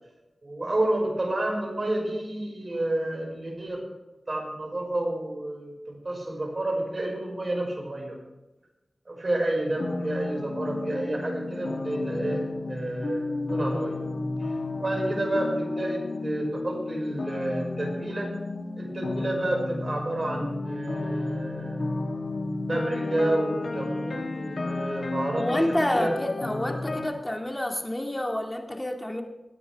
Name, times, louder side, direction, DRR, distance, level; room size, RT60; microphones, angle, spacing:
voice 1, 0.4-3.8 4.3-8.2 9.1-14.0 14.4-18.3 18.8-22.0 22.7-25.6 25.9-26.1, right 1 dB, 45° right, 0 dB, 5.6 m, -30 dB
sound 1, 9.7-27.1, left 2 dB, 65° left, 1.5 m, -32 dB
voice 2, 25.4-29.2, left 1 dB, 20° left, 2 dB, 2.1 m, -28 dB
25.5 x 9.8 x 3.5 m, 1.1 s
cardioid pair, 50°, 0 cm